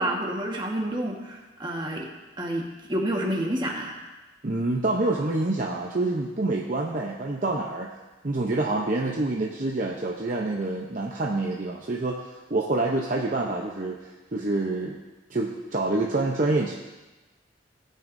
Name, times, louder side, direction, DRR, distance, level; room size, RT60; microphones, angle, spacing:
voice 1, 0.0-2.1 2.4-4.0, right 1 dB, 25° right, -1 dB, 1.4 m, -29 dB
voice 2, 4.4-7.9 8.2-14.0 14.3-15.0 15.3-16.7, right 2 dB, 45° right, -1 dB, 0.8 m, -27 dB
17.0 x 9.1 x 2.6 m, 1.1 s
head